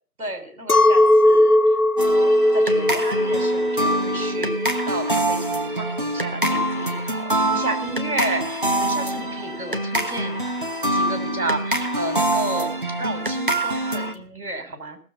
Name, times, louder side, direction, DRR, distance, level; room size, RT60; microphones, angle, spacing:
voice 1, 0.2-1.8 2.1-10.4 10.9-15.0, right 2 dB, 65° right, 7 dB, 3.7 m, -32 dB
Chink clink, 0.7-6.2, left 1 dB, 70° left, 1.1 m, -19 dB
sound 1, 2.0-14.1, right 1 dB, 35° right, 1.1 m, -25 dB
18.0 x 7.2 x 6.6 m, 0.42 s
figure-of-eight pair, 175°, 46 cm